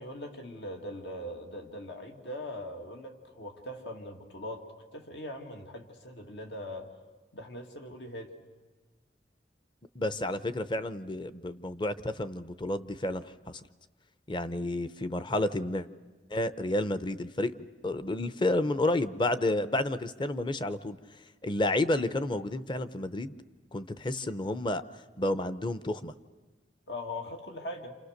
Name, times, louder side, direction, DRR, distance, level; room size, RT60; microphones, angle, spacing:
voice 1, 0.0-4.7 4.9-6.9 7.3-8.3 26.9-28.0, left 1 dB, 75° left, 3 dB, 2.4 m, -41 dB
voice 2, 9.9-13.6 14.3-15.9 16.3-21.0 21.4-23.4 23.7-24.8 25.2-26.1, left 1 dB, 25° left, 13 dB, 0.7 m, -30 dB
28.5 x 28.0 x 6.6 m, 1.3 s
head